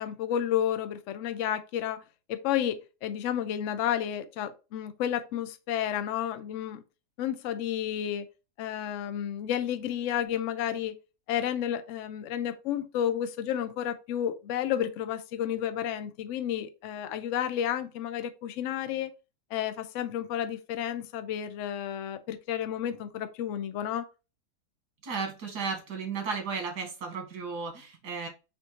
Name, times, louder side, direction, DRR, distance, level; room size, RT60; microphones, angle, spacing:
voice 1, 0.0-2.0 2.3-6.8 7.2-8.3 8.6-10.9 11.3-19.1 19.5-24.1, left 10 dB, 65° left, 0.8 m, -31 dB
voice 2, 25.0-28.3, right 5 dB, 80° right, 2.0 m, -34 dB
5.4 x 2.6 x 2.9 m
omnidirectional pair, 1.7 m